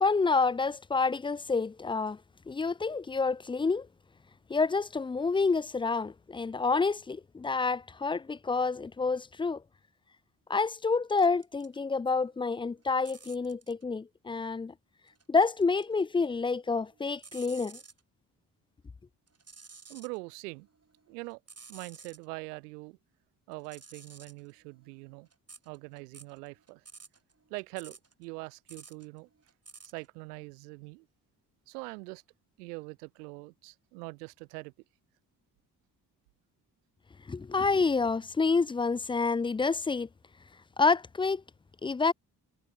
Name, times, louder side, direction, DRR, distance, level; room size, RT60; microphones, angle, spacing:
voice 1, 0.0-2.2 2.5-3.9 4.5-9.6 10.5-14.7 15.3-17.8 37.3-40.1 40.8-41.4 41.8-42.1, left 4 dB, 10° left, 0.3 m, -28 dB
sound 1, 11.2-11.8 12.2-13.8 15.1-16.0 16.3-18.0 19.3-20.2 20.6-22.2 23.5-30.1, right 4 dB, 30° right, 3.5 m, -53 dB
voice 2, 19.9-20.7 21.1-21.4 21.7-23.0 23.5-25.3 25.7-26.8 27.5-29.3 29.8-31.1 31.7-32.2 32.6-34.7, right 27 dB, 90° right, 0.6 m, -43 dB
hypercardioid pair, 40°, 46 cm